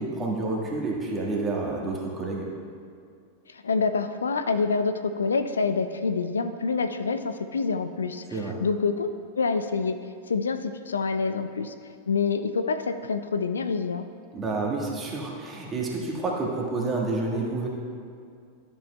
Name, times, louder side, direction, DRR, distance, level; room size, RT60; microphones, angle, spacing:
voice 1, 0.0-2.5 8.3-8.6 14.3-17.7, right 3 dB, 20° right, -2 dB, 1.6 m, -29 dB
voice 2, 3.5-9.1 9.4-10.0 10.3-11.7 12.1-14.0, left 4 dB, 70° left, 9 dB, 0.3 m, -27 dB
12.5 x 7.4 x 2.2 m, 2.3 s
figure-of-eight pair, 90°, 0 cm